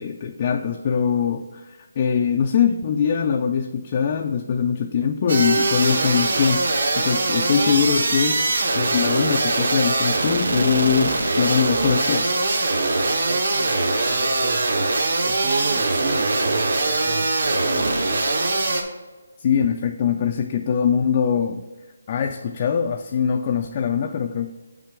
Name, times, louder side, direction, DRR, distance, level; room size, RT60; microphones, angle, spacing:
voice 1, 0.0-6.7 7.0-8.4 8.7-12.3 19.4-21.6 22.1-24.5, left 7 dB, 25° left, 4 dB, 0.3 m, -22 dB
sound 1, 5.3-18.8, right 2 dB, 60° right, 1.1 m, -22 dB
voice 2, 13.0-15.0 15.2-18.3, right 5 dB, 30° right, 10 dB, 0.5 m, -32 dB
8.2 x 5.7 x 3.5 m, 1.3 s
hypercardioid pair, 175°, 0 cm